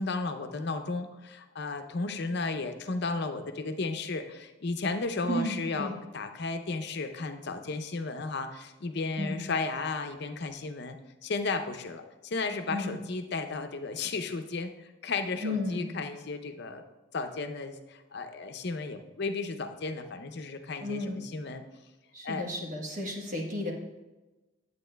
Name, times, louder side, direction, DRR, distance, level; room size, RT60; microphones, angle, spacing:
voice 1, 0.0-11.0 11.2-16.8 17.1-21.6 22.2-22.5, left 3 dB, 55° left, 7 dB, 0.6 m, -34 dB
voice 2, 5.3-5.9 9.2-9.4 12.7-12.9 15.4-15.9 20.8-21.2 22.1-23.7, left 1 dB, 40° right, -1 dB, 1.2 m, -33 dB
10.5 x 8.3 x 2.2 m, 1.1 s
head